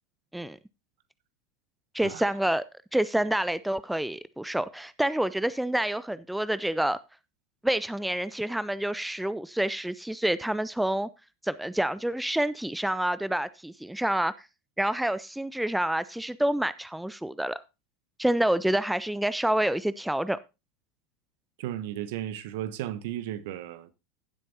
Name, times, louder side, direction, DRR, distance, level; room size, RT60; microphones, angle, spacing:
voice 1, 1.9-2.6 2.9-7.0 7.6-11.1 11.4-14.5 14.8-17.6 18.2-20.4, right 1 dB, 5° right, 0.4 m, -28 dB
voice 2, 21.6-23.9, right 12 dB, 60° right, 1.0 m, -34 dB
16.0 x 7.7 x 2.8 m
figure-of-eight pair, 85°, 0 cm